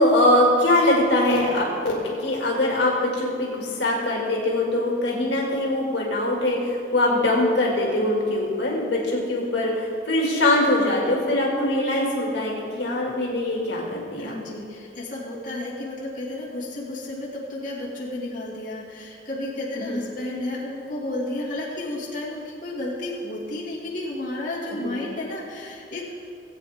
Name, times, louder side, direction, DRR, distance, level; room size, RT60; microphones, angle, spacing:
voice 1, 0.0-14.3 19.8-20.0 24.8-24.9, left 1 dB, 70° left, -2 dB, 2.2 m, -22 dB
voice 2, 14.2-26.1, left 1 dB, 45° left, -6 dB, 2.2 m, -32 dB
18.0 x 8.6 x 3.6 m, 2.5 s
head